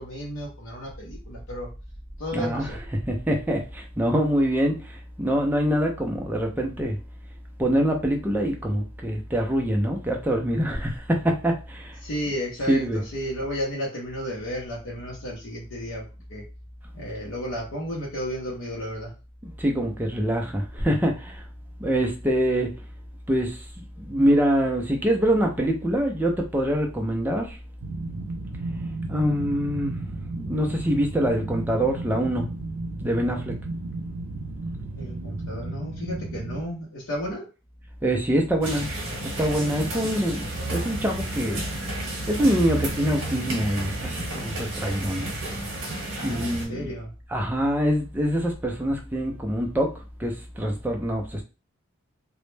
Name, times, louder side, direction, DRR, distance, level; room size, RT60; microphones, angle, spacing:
voice 1, 0.0-1.7 2.2-2.8 12.0-16.4 16.9-19.1 34.9-37.4 40.0-40.1 46.1-47.1, equal, 70° left, 0.6 m, -33 dB
voice 2, 2.3-2.7 3.1-7.0 7.6-12.0 12.7-13.0 19.4-21.4 21.8-22.7 23.3-27.6 29.1-30.0 30.4-32.5 33.0-33.6 38.0-38.9 39.2-41.6 42.3-45.3 46.2-46.9 47.3-49.9 50.2-51.4, equal, 10° right, 0.3 m, -25 dB
sound 1, 27.8-36.6, right 2 dB, 90° right, 0.4 m, -34 dB
sound 2, 38.6-46.6, right 2 dB, 65° right, 0.9 m, -31 dB
2.0 x 2.0 x 3.1 m
head